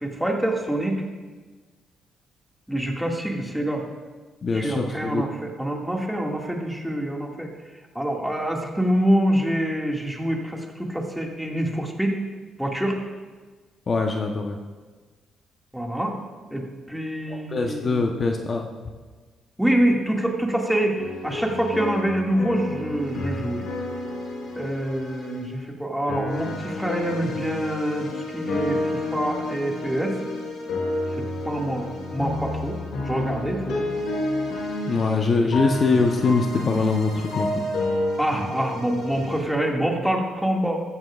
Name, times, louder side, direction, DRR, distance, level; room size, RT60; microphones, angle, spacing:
voice 1, 0.0-1.0 2.7-3.8 4.5-7.5 7.9-12.2 12.6-13.0 15.7-16.2 16.5-18.1 19.6-23.7 24.6-30.2 31.2-32.8 33.0-33.9 35.4-35.5 38.2-40.8, right 1 dB, 5° right, -1 dB, 2.1 m, -26 dB
voice 2, 4.4-5.2 13.9-14.6 17.5-18.7 34.9-37.6, left 3 dB, 40° left, 2 dB, 1.0 m, -23 dB
sound 1, 21.0-25.5 26.1-39.4, left 2 dB, 80° left, 3.8 m, -30 dB
14.5 x 14.0 x 2.5 m, 1.4 s
cardioid pair, 90°, 0 cm